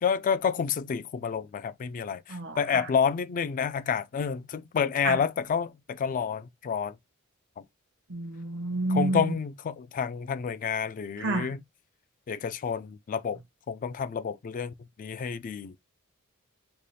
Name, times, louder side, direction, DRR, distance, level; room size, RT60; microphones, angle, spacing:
voice 1, 0.0-7.0 7.6-7.7 8.9-11.6 12.3-13.4 13.7-15.7, left 6 dB, 40° left, 0.3 m, -29 dB
voice 2, 2.3-2.9 5.0-5.2 8.1-9.3 11.2-11.5, right 2 dB, 55° right, 0.7 m, -29 dB
3.3 x 2.2 x 4.0 m
head